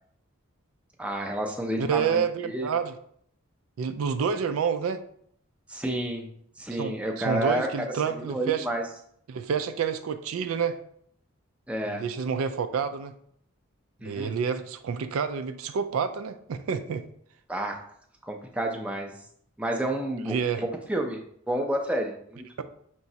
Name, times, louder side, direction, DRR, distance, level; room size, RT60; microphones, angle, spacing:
voice 1, 1.0-2.7 5.7-6.3 6.6-7.7 8.2-8.8 11.7-12.0 14.0-14.3 17.5-17.8 18.2-19.1 19.6-22.6, right 1 dB, 5° right, 2 dB, 0.4 m, -30 dB
voice 2, 1.8-2.9 3.8-5.0 6.7-8.7 9.3-10.8 11.8-13.1 14.0-17.0 20.1-20.6, right 6 dB, 90° right, 10 dB, 0.4 m, -28 dB
5.6 x 3.0 x 2.7 m, 0.66 s
head